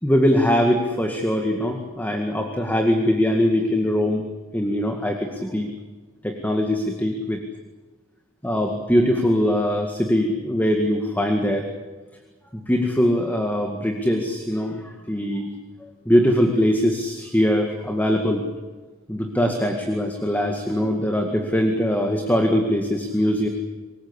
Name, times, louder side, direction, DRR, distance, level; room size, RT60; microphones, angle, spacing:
voice 1, 0.0-4.2 4.5-5.7 6.2-7.4 8.4-11.7 12.5-15.5 15.8-18.4 19.1-23.5, equal, 10° left, 3 dB, 2.0 m, -22 dB
25.5 x 21.0 x 8.3 m, 1.3 s
head